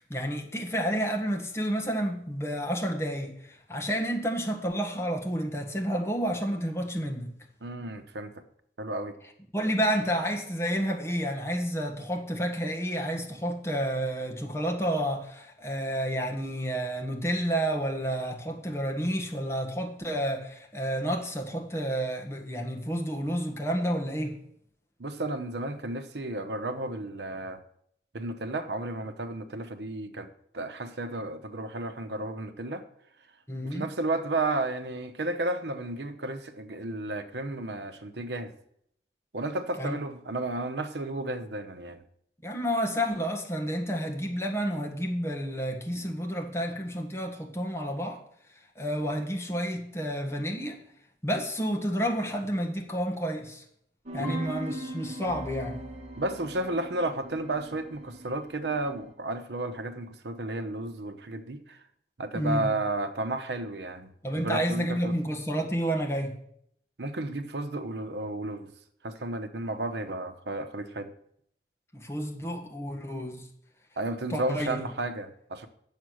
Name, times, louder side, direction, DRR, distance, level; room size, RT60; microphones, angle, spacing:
voice 1, 0.0-7.3 9.5-24.4 33.5-33.9 39.8-40.0 42.4-48.2 48.8-50.8 51.2-53.6 54.1-55.8 62.3-62.7 64.2-66.4 71.9-73.4 74.3-74.8, equal, 15° left, 1.3 m, -30 dB
voice 2, 7.6-8.4 8.8-9.1 25.0-27.6 28.1-32.8 33.6-38.5 39.3-42.0 54.2-54.5 56.2-61.8 62.2-65.2 67.0-68.7 69.0-71.1 74.0-75.7, right 2 dB, 75° right, 0.9 m, -33 dB
sound 1, 54.1-59.0, right 1 dB, 40° right, 1.6 m, -40 dB
8.9 x 7.3 x 6.3 m
head